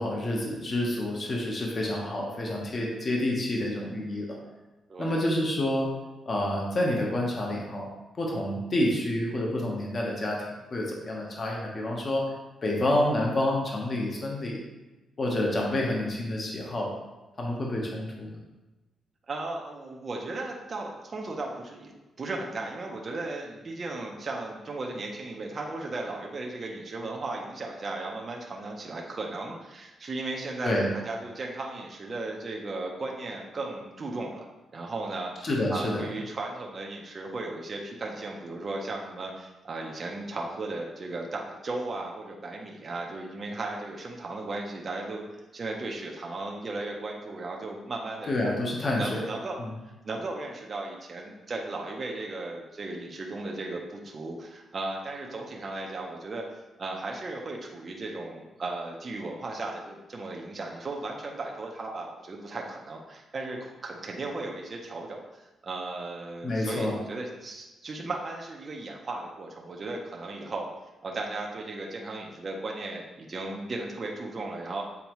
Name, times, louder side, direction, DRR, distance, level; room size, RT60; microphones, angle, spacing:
voice 1, 0.0-4.4 5.0-5.9 6.3-7.9 8.2-10.4 10.7-12.3 12.6-14.6 15.2-16.9 17.4-18.4 30.6-30.9 35.4-36.1 48.3-49.2 49.6-49.7 66.4-67.0, left 1 dB, 30° left, -1 dB, 1.0 m, -28 dB
voice 2, 4.9-5.2 19.3-30.7 31.0-34.5 34.7-45.3 45.5-48.3 48.9-49.6 50.0-56.4 56.8-70.7 71.0-74.8, right 2 dB, 30° right, -1 dB, 0.7 m, -36 dB
7.1 x 4.3 x 3.0 m, 1.1 s
wide cardioid pair, 170°, 0 cm